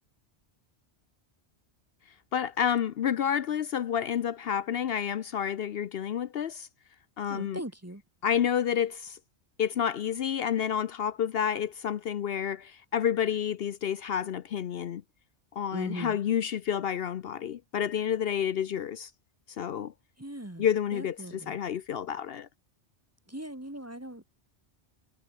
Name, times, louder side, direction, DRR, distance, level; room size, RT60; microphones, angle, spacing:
voice 1, 2.3-6.7 7.2-7.6 8.2-9.2 9.6-15.0 15.6-19.1 19.6-19.9 20.6-22.5, left 9 dB, 65° left, 0.8 m, -29 dB
voice 2, 7.3-8.0 15.7-16.2 20.2-20.7 20.9-21.5 23.3-24.2, right 1 dB, 15° right, 1.4 m, -39 dB
omnidirectional pair, 1.1 m